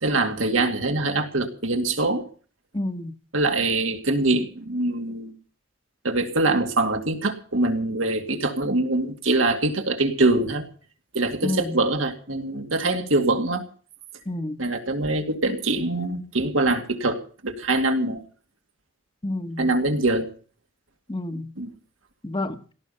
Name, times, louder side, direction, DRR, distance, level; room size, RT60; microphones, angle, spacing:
voice 1, 0.0-2.3 3.3-5.3 6.0-10.7 11.1-13.6 14.6-18.2 19.6-20.3 21.6-21.7, right 2 dB, 85° right, 5 dB, 2.4 m, -24 dB
voice 2, 2.7-3.1 11.4-11.8 14.3-14.6 19.2-19.7 21.1-21.5 22.2-22.6, left 2 dB, 25° left, 10 dB, 1.1 m, -29 dB
17.5 x 13.5 x 5.6 m, 0.42 s
head